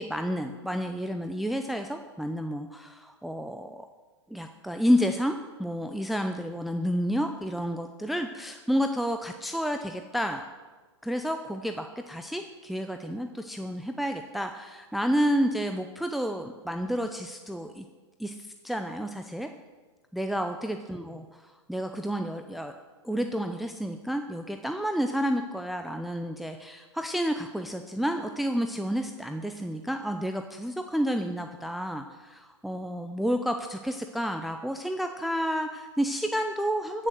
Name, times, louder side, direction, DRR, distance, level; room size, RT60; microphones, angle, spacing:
voice 1, 0.0-3.9 4.3-10.4 11.0-17.8 18.2-19.5 20.1-22.7 23.0-37.1, equal, ahead, 6 dB, 0.6 m, -30 dB
14.0 x 6.5 x 7.7 m, 1.3 s
hypercardioid pair, 115°, 15 cm